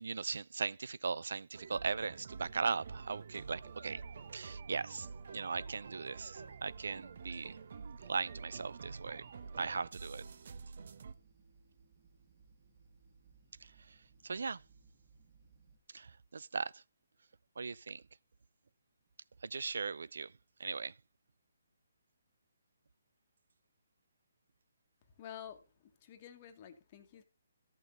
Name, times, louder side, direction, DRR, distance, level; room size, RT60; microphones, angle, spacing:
voice 1, 0.0-4.0 4.3-5.1 5.3-7.6 8.1-9.3 9.5-10.2 13.6-14.0 14.2-14.6 15.9-16.8 17.6-18.0 19.4-20.3 20.6-20.9, right 5 dB, 75° right, 0.4 m, -38 dB
sound 1, 1.5-11.1, right 5 dB, 55° right, 0.9 m, -48 dB
sound 2, 5.7-15.8, right 5 dB, 35° right, 2.1 m, -65 dB
voice 2, 25.2-27.2, left 9 dB, 30° left, 1.3 m, -50 dB
14.0 x 6.0 x 3.9 m
hypercardioid pair, 165°, 0 cm